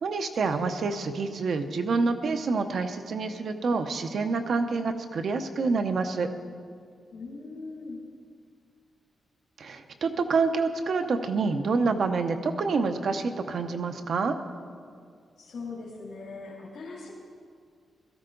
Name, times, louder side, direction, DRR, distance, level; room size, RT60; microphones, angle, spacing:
voice 1, 0.0-6.3 9.6-14.3, right 4 dB, 55° right, 7 dB, 0.7 m, -27 dB
voice 2, 7.1-8.0 15.4-17.1, left 3 dB, 80° left, -5 dB, 2.4 m, -40 dB
17.5 x 13.5 x 3.9 m, 2.1 s
wide cardioid pair, 165°, 0 cm